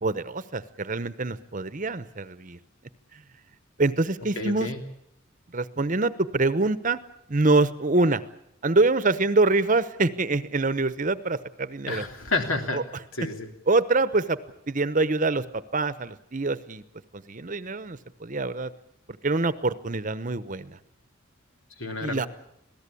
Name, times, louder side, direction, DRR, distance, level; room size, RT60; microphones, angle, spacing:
voice 1, 0.0-2.6 3.8-4.7 5.5-7.0 7.3-8.2 8.6-12.0 12.7-12.8 13.7-14.4 14.7-16.8 17.1-18.7 19.2-20.8 22.0-22.3, right 3 dB, 40° right, 14 dB, 0.9 m, -25 dB
voice 2, 4.3-4.8 11.9-12.8 13.1-13.5 21.8-22.3, left 3 dB, 80° left, 4 dB, 3.4 m, -30 dB
26.5 x 17.5 x 8.5 m, 0.76 s
head